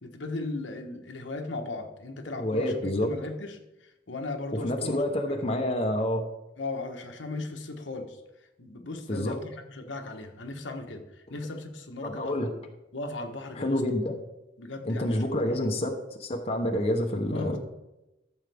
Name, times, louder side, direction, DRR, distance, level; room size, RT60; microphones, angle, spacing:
voice 1, 0.0-5.1 5.4-5.6 6.6-8.2 8.6-12.6 12.9-14.0 14.6-15.9 17.3-17.6, left 2 dB, 85° left, 4 dB, 1.2 m, -37 dB
voice 2, 2.3-3.1 4.5-6.2 9.1-9.4 12.0-12.5 13.6-14.1 14.8-15.9 16.2-17.6, left 1 dB, 35° left, 3 dB, 1.0 m, -28 dB
13.5 x 7.2 x 3.5 m, 0.95 s
head